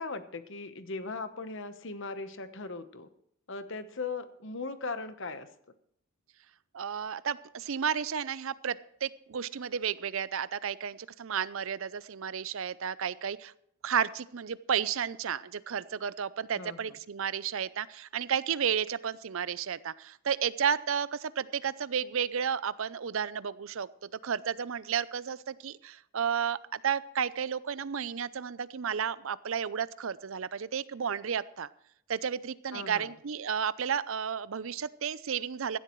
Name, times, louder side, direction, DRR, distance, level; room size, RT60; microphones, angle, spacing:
voice 1, 0.0-3.1 3.5-5.5 16.6-16.9 32.7-33.1, left 3 dB, 55° left, 10 dB, 1.1 m, -38 dB
voice 2, 6.7-13.5 13.8-23.9 24.2-31.7 32.1-35.8, right 7 dB, 65° right, 17 dB, 0.5 m, -32 dB
16.5 x 12.0 x 3.1 m, 0.71 s
head